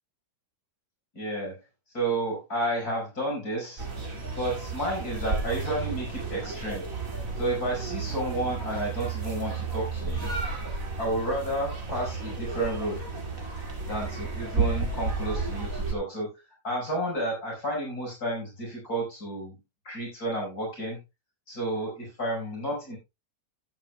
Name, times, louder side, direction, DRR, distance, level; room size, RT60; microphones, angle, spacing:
voice 1, 1.2-1.6 1.9-3.9 4.4-6.8 7.4-10.3 11.0-13.0 13.9-16.3 16.6-19.6 19.8-21.0 21.5-23.0, right 1 dB, 65° left, -2 dB, 6.0 m, -31 dB
sound 1, 3.8-15.9, right 4 dB, 55° right, 2.9 m, -32 dB
15.5 x 8.8 x 2.3 m, 0.23 s
omnidirectional pair, 1.7 m